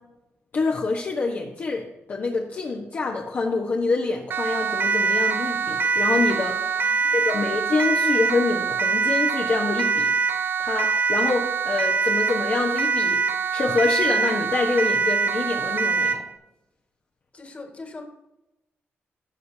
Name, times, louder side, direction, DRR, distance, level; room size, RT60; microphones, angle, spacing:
voice 1, 0.5-10.1 10.6-13.2 13.5-16.2, left 3 dB, 45° left, -1 dB, 1.1 m, -26 dB
Siren, 4.3-16.3, right 5 dB, 50° right, 0.6 m, -24 dB
voice 2, 6.7-7.5 17.3-18.0, left 3 dB, 30° left, 3 dB, 1.8 m, -42 dB
15.0 x 6.5 x 2.8 m, 0.95 s
cardioid pair, 120°, 4 cm